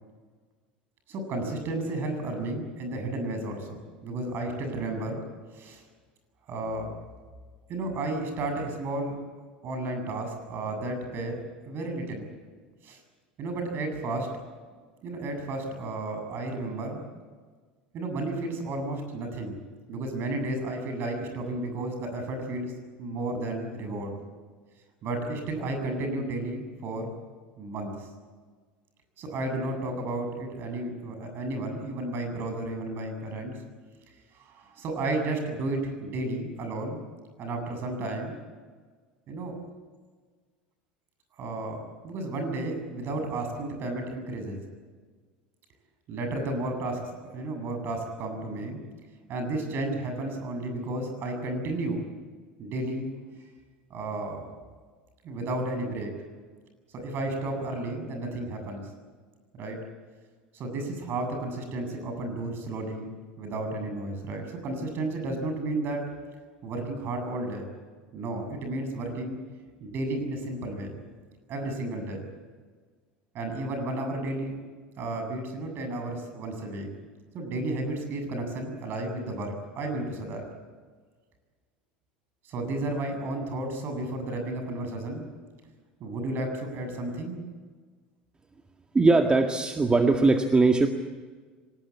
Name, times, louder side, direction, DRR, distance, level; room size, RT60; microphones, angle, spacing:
voice 1, 1.1-5.2 5.5-5.8 6.5-6.9 7.7-9.1 9.6-11.4 11.6-12.3 12.8-13.0 13.4-14.3 15.0-17.0 17.9-19.6 19.9-22.7 23.0-24.2 25.0-27.1 27.6-28.1 29.2-33.6 34.3-37.0 37.4-38.3 39.3-39.6 41.4-44.6 46.1-48.8 49.3-52.0 52.6-53.1 53.9-54.5 55.2-56.1 56.9-58.9 59.5-59.8 60.5-63.1 63.4-66.1 66.6-67.7 68.1-69.4 69.8-71.0 71.5-72.3 73.3-74.6 75.0-76.9 77.3-80.5 82.4-85.3 86.0-87.4, right 2 dB, 45° right, 5 dB, 7.7 m, -32 dB
voice 2, 88.9-90.9, right 3 dB, 20° right, 4 dB, 1.9 m, -20 dB
25.5 x 19.0 x 8.7 m, 1.5 s
hypercardioid pair, 75°, 5 cm